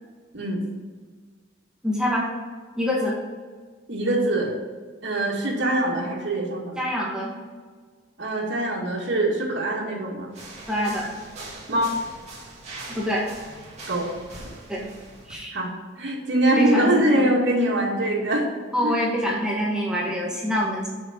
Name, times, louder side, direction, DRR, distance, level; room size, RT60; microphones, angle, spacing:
voice 1, 1.8-2.3 2.7-3.2 6.8-7.4 10.7-11.1 12.9-13.3 14.7-14.9 15.3-15.5 16.6-17.3 18.7-20.9, equal, 5° right, -4 dB, 1.6 m, -25 dB
voice 2, 3.9-4.5 5.0-6.8 8.2-10.3 11.7-12.0 13.9-14.1 15.5-15.7 16.0-18.4 18.8-18.9, right 1 dB, 70° right, -3 dB, 2.3 m, -23 dB
sound 1, 10.3-15.4, right 2 dB, 35° right, 2.2 m, -41 dB
6.6 x 6.5 x 5.3 m, 1.5 s
head